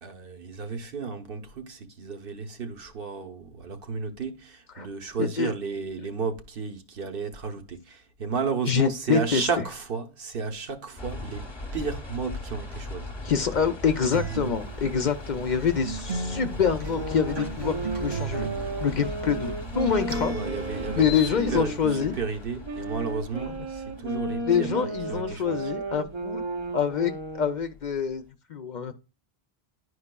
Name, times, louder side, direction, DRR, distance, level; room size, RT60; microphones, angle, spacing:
voice 1, 0.0-13.1 20.3-25.7, right 5 dB, 65° right, 1.0 m, -33 dB
voice 2, 5.2-5.5 8.7-9.5 13.2-18.5 18.8-20.3 21.0-22.2 24.4-26.4 26.7-28.2 28.5-28.9, left 7 dB, 55° left, 0.6 m, -26 dB
sound 1, 11.0-28.1, left 2 dB, 25° left, 0.9 m, -39 dB
Acoustic guitar, 14.1-22.1, right 4 dB, 85° right, 2.0 m, -36 dB
sound 2, 16.8-22.2 22.6-27.5, right 2 dB, 35° right, 0.6 m, -34 dB
11.0 x 4.7 x 2.2 m
omnidirectional pair, 1.0 m